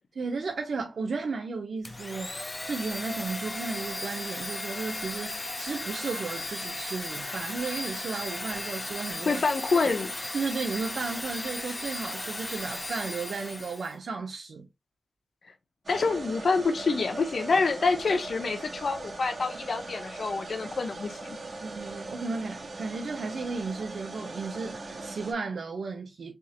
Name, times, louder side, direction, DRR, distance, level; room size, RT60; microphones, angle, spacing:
voice 1, 0.2-9.4 10.3-14.7 21.6-26.3, right 4 dB, 80° right, 0.8 m, -34 dB
Domestic sounds home sounds, 1.8-13.9, left 2 dB, 25° left, 0.6 m, -36 dB
voice 2, 9.2-10.1 15.9-21.4, left 4 dB, 65° left, 0.9 m, -27 dB
sound 1, 15.9-25.3, right 2 dB, 50° right, 1.6 m, -40 dB
3.6 x 3.6 x 2.9 m
wide cardioid pair, 90°, 0 cm